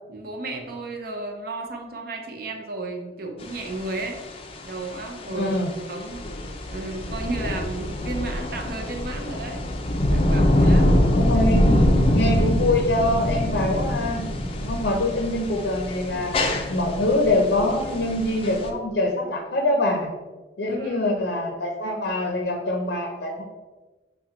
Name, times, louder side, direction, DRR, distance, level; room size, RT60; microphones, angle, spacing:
voice 1, 0.1-4.2 4.6-5.6 5.9-6.2 6.7-9.7 10.1-10.9 20.7-21.1, right 2 dB, 55° right, 4 dB, 0.6 m, -33 dB
sound 1, 3.4-18.7, left 1 dB, 30° left, 0.4 m, -24 dB
voice 2, 5.3-5.7 11.1-14.2 14.5-16.3 16.7-20.1 20.6-23.4, left 1 dB, 75° left, 0 dB, 0.6 m, -24 dB
5.5 x 2.2 x 3.8 m, 1.2 s
head